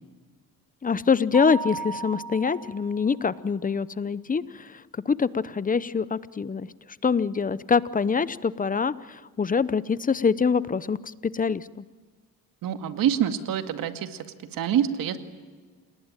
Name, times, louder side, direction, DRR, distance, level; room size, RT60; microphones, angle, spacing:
voice 1, 0.8-6.7 7.0-11.8, left 5 dB, 25° left, 17 dB, 0.8 m, -25 dB
Mallet percussion, 1.3-3.1, right 2 dB, ahead, 4.2 m, -35 dB
voice 2, 12.6-14.2 14.5-15.2, right 9 dB, 70° right, 8 dB, 2.2 m, -26 dB
28.5 x 19.5 x 9.1 m, 1.5 s
cardioid pair, 95°, 35 cm